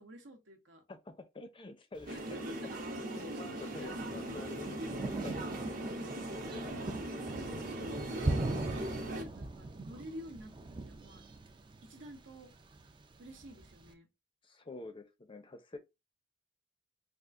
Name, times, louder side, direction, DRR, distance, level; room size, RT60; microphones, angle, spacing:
voice 1, 0.0-0.8 2.1-2.4 3.7-3.9 7.2-7.6 8.0-11.2 11.8-12.5 13.2-14.1, equal, 75° right, 0.9 m, -50 dB
voice 2, 0.9-2.4 3.0-5.8 7.1-7.4 7.8-8.2 14.4-15.8, left 3 dB, 25° left, 0.5 m, -49 dB
Thunder, 2.0-13.9, right 2 dB, 25° right, 0.4 m, -41 dB
sound 1, 2.1-9.2, right 1 dB, 50° right, 0.8 m, -40 dB
3.6 x 2.4 x 2.4 m
head